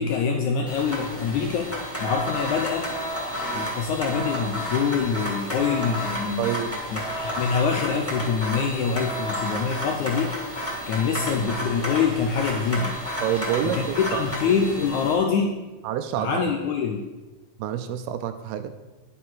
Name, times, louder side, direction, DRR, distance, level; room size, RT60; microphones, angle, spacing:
voice 1, 0.0-1.7 2.0-2.9 3.5-6.6 6.9-10.3 10.8-13.0 13.6-15.6 16.2-17.1, left 6 dB, 85° left, 3 dB, 1.6 m, -25 dB
sound 1, 0.7-15.1, equal, 5° left, 2.8 m, -31 dB
voice 2, 6.4-6.8 13.2-14.3 15.8-16.4 17.6-18.7, right 9 dB, 80° right, 9 dB, 2.5 m, -28 dB
11.5 x 8.9 x 6.3 m, 1.1 s
omnidirectional pair, 4.7 m